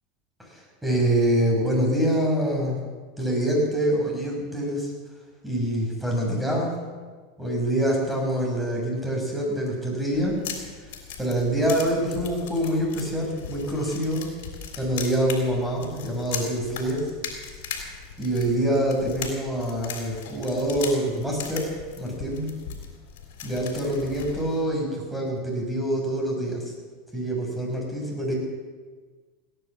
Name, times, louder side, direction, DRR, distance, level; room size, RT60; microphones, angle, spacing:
voice 1, 0.4-2.8 3.2-4.9 5.4-6.8 7.4-10.4 11.2-14.3 14.8-17.1 18.2-21.7 22.0-22.5 23.4-26.7 27.1-28.3, right 1 dB, 5° right, -1 dB, 6.1 m, -25 dB
sound 1, 10.1-24.6, left 7 dB, 75° left, 3.4 m, -38 dB
17.5 x 10.0 x 7.3 m, 1.5 s
hypercardioid pair, 105°, 0 cm